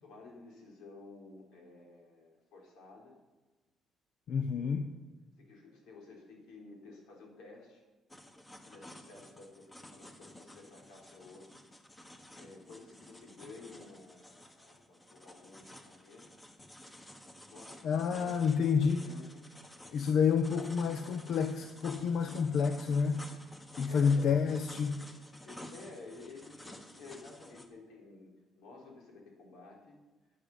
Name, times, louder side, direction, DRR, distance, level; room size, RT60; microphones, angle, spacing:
voice 1, 0.0-3.2 4.4-4.8 5.4-7.8 8.6-11.6 12.0-16.3 17.5-19.2 23.9-24.3 25.4-30.0, left 3 dB, 85° left, -1 dB, 3.8 m, -53 dB
voice 2, 4.3-4.9 17.8-19.0 19.9-23.3 23.7-25.0, left 6 dB, 60° left, 8 dB, 0.8 m, -29 dB
sound 1, 8.1-27.7, left 1 dB, 15° left, 1.4 m, -52 dB
9.9 x 9.5 x 7.2 m, 1.2 s
cardioid pair, 120°, 0 cm